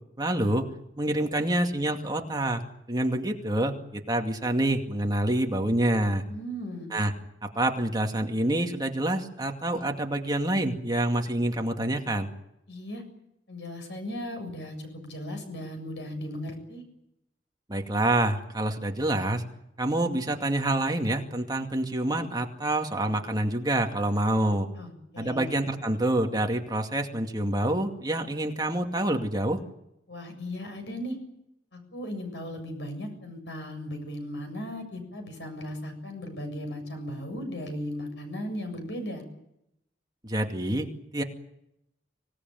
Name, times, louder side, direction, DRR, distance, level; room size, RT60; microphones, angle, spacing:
voice 1, 0.2-0.6 1.0-2.6 2.9-6.2 6.9-7.1 7.4-12.3 17.7-19.4 19.8-24.7 25.2-29.6 40.2-41.2, right 1 dB, 25° right, 3 dB, 2.3 m, -27 dB
voice 2, 6.3-6.9 12.7-13.0 13.5-16.8 24.8-25.5 30.1-31.2 31.7-39.2, equal, 80° left, 6 dB, 7.3 m, -37 dB
25.5 x 18.0 x 9.3 m, 0.82 s
head